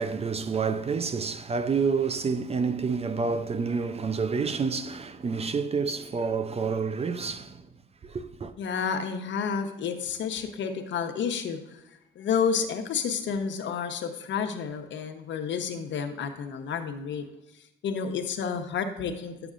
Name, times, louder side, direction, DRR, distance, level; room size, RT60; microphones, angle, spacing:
voice 1, 0.0-7.6 8.1-8.5, right 5 dB, 30° right, 0.5 m, -28 dB
voice 2, 8.6-11.6 12.1-17.3 17.8-19.3, left 6 dB, 70° left, 1.0 m, -30 dB
10.5 x 6.9 x 2.5 m
cardioid pair, 90°, 20 cm